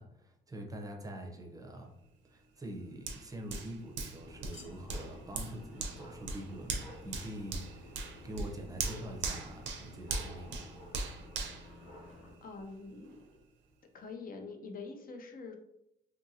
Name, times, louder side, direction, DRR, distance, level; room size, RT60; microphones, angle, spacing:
voice 1, 0.0-1.9 2.2-8.0 8.2-10.7, right 1 dB, 20° right, 2 dB, 0.6 m, -45 dB
Hands, 3.1-12.6 13.0-13.2, right 4 dB, 70° right, 0.6 m, -40 dB
sound 1, 4.2-12.3, left 1 dB, 80° left, 1.1 m, -52 dB
voice 2, 12.4-13.2 13.9-15.5, left 4 dB, 45° left, 5 dB, 0.6 m, -45 dB
2.7 x 2.6 x 2.7 m, 0.82 s
cardioid pair, 90°, 20 cm